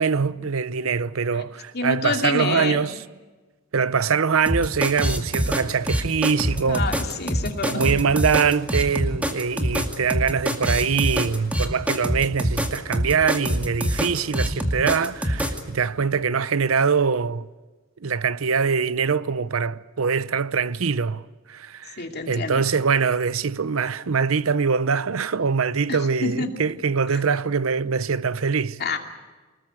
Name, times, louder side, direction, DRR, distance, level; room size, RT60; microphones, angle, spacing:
voice 1, 0.0-3.0 3.7-6.9 7.6-17.5 18.0-28.8, right 5 dB, 85° right, 0.7 m, -23 dB
voice 2, 1.7-2.9 6.7-7.9 22.0-22.6 25.9-26.5 28.8-29.0, left 3 dB, 50° left, 2.6 m, -27 dB
sound 1, 4.5-15.6, equal, 5° right, 2.1 m, -24 dB
24.5 x 20.5 x 8.2 m
head